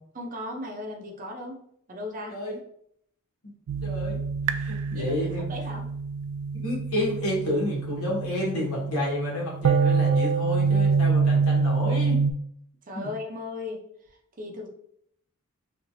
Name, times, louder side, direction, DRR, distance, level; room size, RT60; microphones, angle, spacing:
voice 1, 0.1-2.4 4.9-5.9 12.9-14.7, left 2 dB, 35° right, 0 dB, 0.7 m, -37 dB
sound 1, 3.7-12.3, right 5 dB, 70° right, 0.3 m, -26 dB
voice 2, 3.8-4.2 4.5-5.5 6.5-12.2 12.9-13.1, left 1 dB, 70° left, -4 dB, 1.5 m, -30 dB
3.3 x 3.2 x 2.6 m, 0.69 s
head